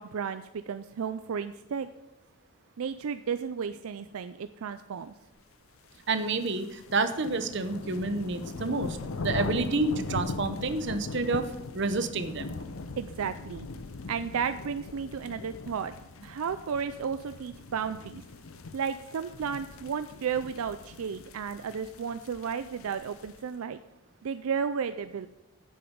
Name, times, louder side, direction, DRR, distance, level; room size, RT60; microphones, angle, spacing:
voice 1, 0.0-1.9 2.8-5.1 13.0-13.7 14.1-15.9 16.2-18.2 18.7-23.8 24.2-25.3, right 6 dB, 80° right, 11 dB, 0.4 m, -33 dB
sound 1, 6.0-23.5, left 3 dB, 75° left, 0.6 m, -40 dB
voice 2, 6.1-11.5 11.7-12.5, right 3 dB, 55° right, 10 dB, 0.8 m, -29 dB
10.0 x 7.7 x 5.2 m, 0.89 s
head